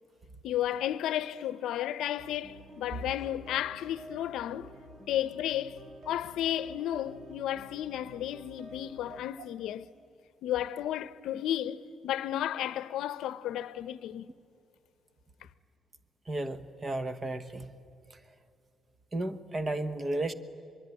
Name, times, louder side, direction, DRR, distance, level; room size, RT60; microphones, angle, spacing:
voice 1, 0.4-4.7 5.1-9.9 10.4-14.3, left 12 dB, 80° left, 0.7 m, -33 dB
sound 1, 2.2-9.2, right 1 dB, 40° right, 2.8 m, -50 dB
voice 2, 16.3-17.6 19.1-20.3, right 2 dB, 25° right, 1.1 m, -33 dB
24.5 x 22.5 x 9.8 m
cardioid pair, 155°, 0 cm